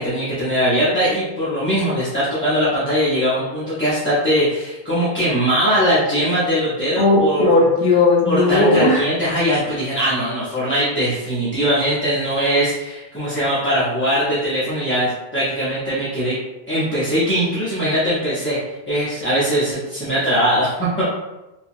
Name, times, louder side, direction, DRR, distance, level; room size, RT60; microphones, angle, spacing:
voice 1, 0.0-7.5 8.3-16.4 16.7-18.6 18.9-21.1, equal, 15° left, -11 dB, 0.5 m, -20 dB
voice 2, 7.5-9.0, left 2 dB, 50° left, -3 dB, 0.8 m, -15 dB
2.9 x 2.5 x 2.5 m, 1.0 s
omnidirectional pair, 1.1 m